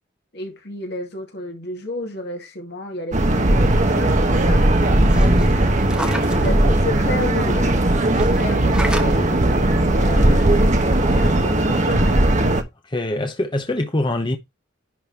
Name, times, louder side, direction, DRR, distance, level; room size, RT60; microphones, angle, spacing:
voice 1, 0.3-4.6 6.0-7.8 8.1-12.3, left 1 dB, 55° left, 2.5 m, -32 dB
sound 1, 3.1-12.6, right 1 dB, 35° right, 1.2 m, -17 dB
sound 2, 5.0-6.5 8.1-9.1 10.4-10.5 10.8-10.9, right 1 dB, 5° right, 1.1 m, -32 dB
voice 2, 5.1-5.6 12.8-14.4, left 1 dB, 25° left, 0.9 m, -24 dB
11.0 x 4.1 x 4.2 m
head